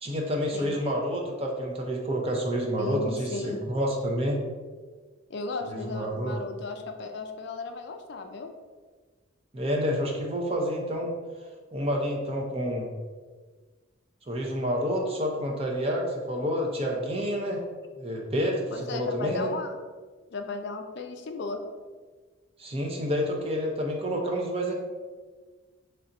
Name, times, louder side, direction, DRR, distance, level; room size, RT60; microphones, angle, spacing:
voice 1, 0.0-4.4 5.6-6.4 9.5-11.1 11.7-12.9 14.3-17.6 18.0-19.5 22.6-24.7, equal, 30° right, 0 dB, 0.6 m, -29 dB
voice 2, 2.8-3.6 5.3-8.5 18.7-19.7 20.3-21.6, left 3 dB, 55° left, 5 dB, 0.4 m, -35 dB
3.3 x 2.6 x 4.0 m, 1.4 s
head